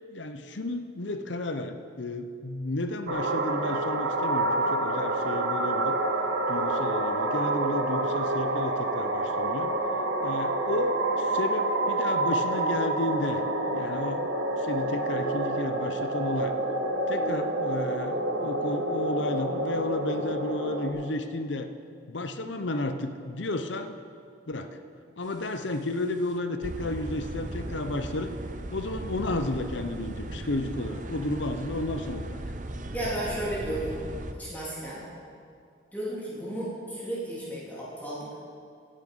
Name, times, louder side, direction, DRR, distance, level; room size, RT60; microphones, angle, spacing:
voice 1, 0.1-6.0 6.5-9.7 10.2-13.4 13.7-14.3 14.6-16.5 17.1-21.7 22.1-23.9 24.5-24.8 25.2-28.3 28.7-32.4, left 2 dB, 70° left, 8 dB, 0.8 m, -32 dB
sound 1, 3.1-20.9, right 2 dB, 75° right, 1.4 m, -28 dB
sound 2, 25.4-25.7 26.2-26.3 26.6-34.3, right 1 dB, 40° right, 0.7 m, -37 dB
voice 2, 32.9-33.9 34.4-35.0 35.9-38.2, right 1 dB, 10° left, -9 dB, 3.4 m, -33 dB
16.0 x 10.0 x 5.5 m, 2.3 s
head